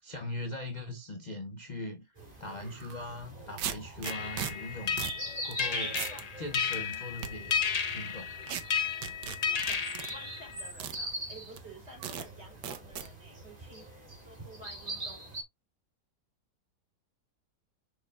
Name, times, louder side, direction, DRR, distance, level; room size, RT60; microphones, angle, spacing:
voice 1, 0.0-5.0 5.4-6.0 6.4-7.6 7.9-8.3, left 1 dB, 35° left, 0.8 m, -40 dB
sound 1, 2.2-15.4, right 1 dB, 25° right, 2.5 m, -43 dB
sound 2, 2.8-2.9 3.6-4.5 5.0-5.2 5.5-5.6 5.9-6.2 6.7-7.3 8.5-8.6 9.0-10.1 10.8-11.0 11.6-11.7 12.0-12.3 12.6-13.1, right 9 dB, 85° right, 1.6 m, -36 dB
sound 3, 4.0-10.7, left 6 dB, 75° left, 0.3 m, -33 dB
voice 2, 9.2-15.3, right 1 dB, 40° right, 4.3 m, -52 dB
6.2 x 6.1 x 2.4 m
omnidirectional pair, 1.8 m